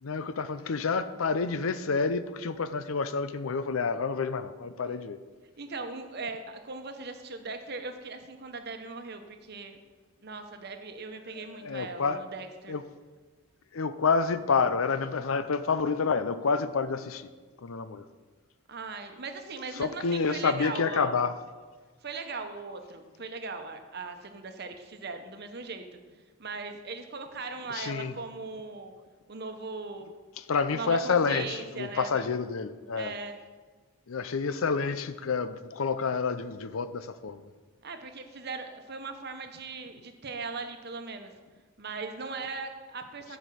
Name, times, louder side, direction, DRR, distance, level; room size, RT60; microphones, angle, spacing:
voice 1, 0.0-5.2 11.3-12.2 12.7-12.8 13.7-17.3 17.6-18.0 19.8-21.3 27.7-28.1 30.4-33.1 34.1-37.4, left 5 dB, 80° left, 13 dB, 0.6 m, -29 dB
voice 2, 5.6-9.8 10.2-12.7 18.7-21.4 22.0-26.0 26.4-28.9 29.3-30.1 30.7-32.3 33.0-33.4 37.8-41.3 41.8-43.4, right 4 dB, 50° right, 6 dB, 1.0 m, -39 dB
9.7 x 5.2 x 7.6 m, 1.4 s
head